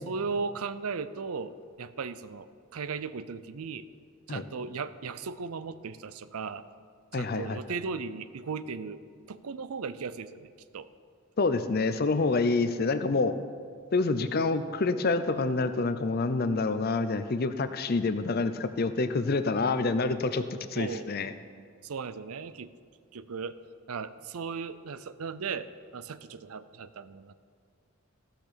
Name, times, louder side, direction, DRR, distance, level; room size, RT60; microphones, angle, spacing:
voice 1, 0.0-1.5 1.8-3.9 4.3-6.6 7.1-9.0 9.3-10.9 20.8-21.1 21.8-22.7 23.1-23.6 23.9-27.3, right 5 dB, 75° right, 14 dB, 0.5 m, -37 dB
voice 2, 7.1-7.6 11.4-13.4 13.9-20.4 20.7-21.3, left 3 dB, 45° left, 10 dB, 0.5 m, -27 dB
15.0 x 5.9 x 6.8 m, 2.2 s
head